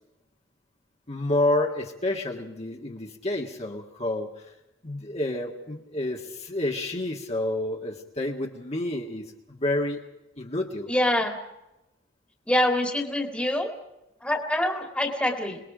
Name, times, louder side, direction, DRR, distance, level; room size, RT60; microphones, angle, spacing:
voice 1, 1.1-4.3 4.8-10.0 10.4-10.9, left 1 dB, 35° left, 0 dB, 1.9 m, -29 dB
voice 2, 10.9-11.4 12.5-13.7 14.2-15.6, left 1 dB, 5° left, 4 dB, 2.2 m, -25 dB
26.0 x 20.0 x 5.1 m, 0.93 s
head